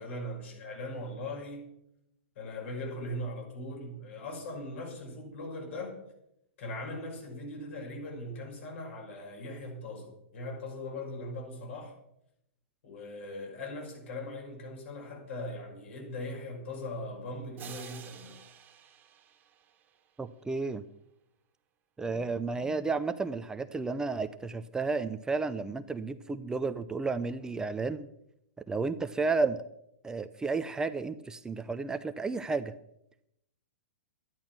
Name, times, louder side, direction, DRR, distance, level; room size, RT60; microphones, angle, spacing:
voice 1, 0.0-1.7 2.4-6.0 6.6-12.0 12.8-18.4, left 1 dB, 65° left, 6.0 m, -40 dB
sound 1, 17.6-20.4, right 9 dB, 25° right, 1.7 m, -50 dB
voice 2, 20.2-20.8 22.0-28.1 28.7-29.6 30.0-32.7, right 4 dB, 10° right, 0.5 m, -32 dB
12.5 x 10.5 x 6.0 m
hypercardioid pair, 125°, 7 cm